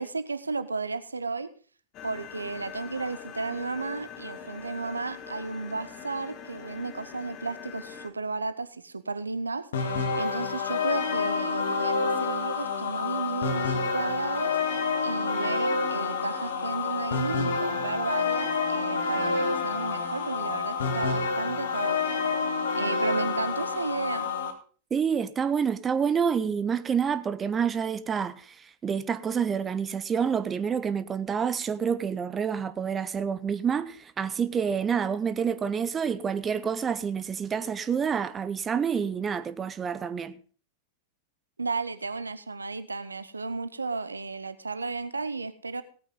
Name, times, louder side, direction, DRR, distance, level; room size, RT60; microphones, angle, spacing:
voice 1, 0.0-1.5 2.0-14.6 15.0-24.3 41.6-45.8, right 4 dB, 80° right, 0.8 m, -33 dB
sound 1, 1.9-8.1, left 7 dB, 35° left, 1.8 m, -43 dB
sound 2, 9.7-24.5, left 4 dB, 60° left, 1.7 m, -28 dB
voice 2, 24.9-40.4, right 7 dB, 20° right, 0.8 m, -28 dB
17.5 x 9.0 x 3.8 m
figure-of-eight pair, 90°, 0 cm